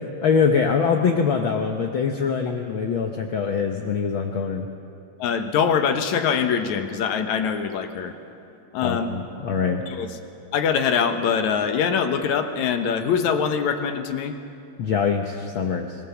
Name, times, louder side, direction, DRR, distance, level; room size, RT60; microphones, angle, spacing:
voice 1, 0.2-4.7 8.8-9.9 14.8-15.9, left 6 dB, 60° left, 3 dB, 1.4 m, -23 dB
voice 2, 5.2-8.1 8.7-9.1 9.9-10.1 10.5-14.4, left 7 dB, 75° left, 7 dB, 2.5 m, -23 dB
23.5 x 19.5 x 7.1 m, 2.5 s
omnidirectional pair, 3.4 m